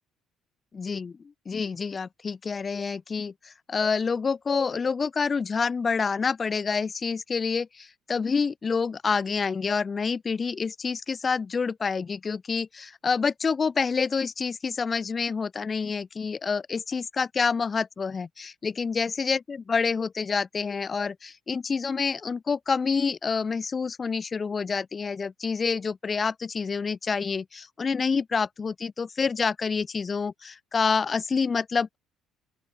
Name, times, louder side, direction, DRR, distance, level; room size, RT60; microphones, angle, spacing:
voice 1, 0.7-1.1 1.5-32.0, left 5 dB, 30° left, 0.8 m, -28 dB
open air
cardioid pair, 100°, 0 cm